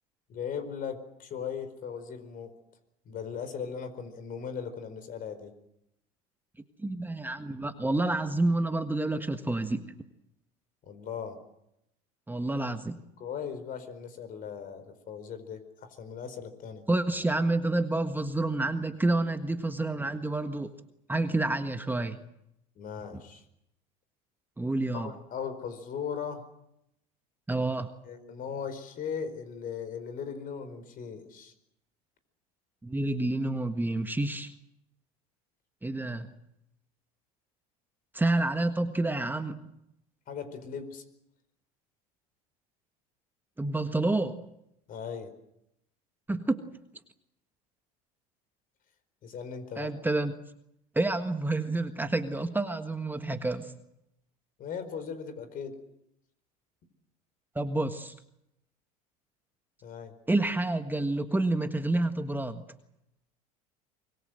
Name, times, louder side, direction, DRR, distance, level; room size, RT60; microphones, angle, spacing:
voice 1, 0.3-2.5 3.0-5.5 10.8-11.4 13.2-16.8 22.8-23.4 24.9-26.5 28.0-31.5 40.3-41.0 44.9-45.3 49.2-49.9 54.6-55.8 59.8-60.1, left 7 dB, 50° left, 11 dB, 4.7 m, -38 dB
voice 2, 6.8-9.9 12.3-13.0 16.9-20.7 21.1-22.2 24.6-25.1 27.5-27.9 32.8-34.5 35.8-36.3 38.1-39.7 43.6-44.4 46.3-46.6 49.8-50.3 50.9-53.7 57.5-58.1 60.3-62.6, right 2 dB, 10° right, 8 dB, 1.5 m, -29 dB
24.0 x 22.5 x 7.9 m, 0.82 s
hypercardioid pair, 85°, 19 cm